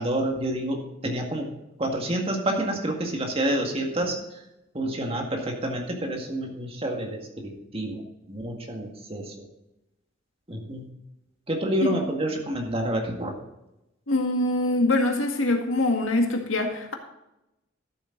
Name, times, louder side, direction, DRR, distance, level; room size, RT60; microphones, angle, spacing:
voice 1, 0.0-1.5 1.8-4.4 4.7-8.0 8.3-9.4 10.5-10.9 11.5-13.4, right 1 dB, 30° right, 2 dB, 1.9 m, -28 dB
voice 2, 14.1-16.9, left 2 dB, 85° left, 3 dB, 2.0 m, -24 dB
13.0 x 7.9 x 3.9 m, 0.90 s
head